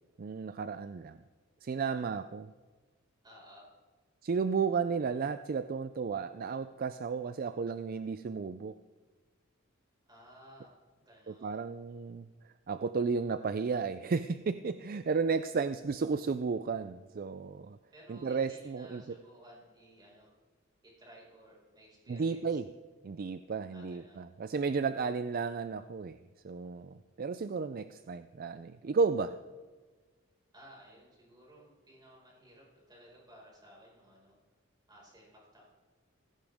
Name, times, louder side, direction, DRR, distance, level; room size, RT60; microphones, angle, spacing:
voice 1, 0.2-1.2 1.6-2.5 4.2-8.8 11.3-17.8 18.1-19.2 22.1-22.7 23.0-26.2 26.4-29.4, right 5 dB, 45° right, 12 dB, 0.4 m, -33 dB
voice 2, 3.2-3.7 10.1-11.6 15.8-16.1 17.9-20.3 20.8-22.6 23.7-24.3 30.5-34.4 34.9-35.6, equal, 20° right, -4 dB, 5.3 m, -57 dB
16.5 x 15.5 x 3.6 m, 1.4 s
head